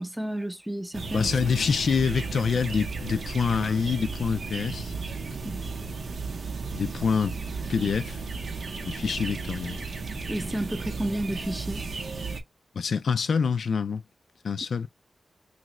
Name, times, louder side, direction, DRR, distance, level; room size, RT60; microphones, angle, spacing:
voice 1, 0.0-1.3 5.4-5.8 10.3-11.8, right 1 dB, 10° right, 0.6 m, -31 dB
sound 1, 0.9-12.4, right 4 dB, 75° right, 0.6 m, -34 dB
voice 2, 1.1-4.9 6.7-7.4 7.7-8.2 8.9-9.8 12.7-14.0 14.4-14.9, left 5 dB, 80° left, 0.3 m, -26 dB
3.0 x 2.5 x 2.9 m
cardioid pair, 60°, 0 cm